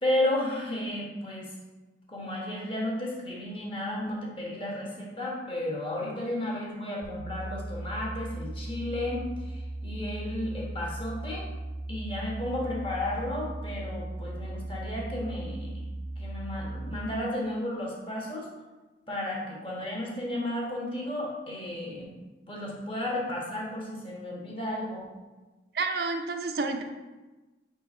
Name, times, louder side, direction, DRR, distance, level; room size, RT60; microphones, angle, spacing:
voice 1, 0.0-1.5 2.1-11.6 11.9-15.9 16.2-18.5 19.1-22.1 22.5-25.1, left 1 dB, 30° left, -3 dB, 1.4 m, -33 dB
sound 1, 7.0-17.0, right 2 dB, 85° right, 0.8 m, -37 dB
voice 2, 25.7-26.8, right 3 dB, 55° right, 5 dB, 0.5 m, -29 dB
5.2 x 4.5 x 4.2 m, 1.2 s
head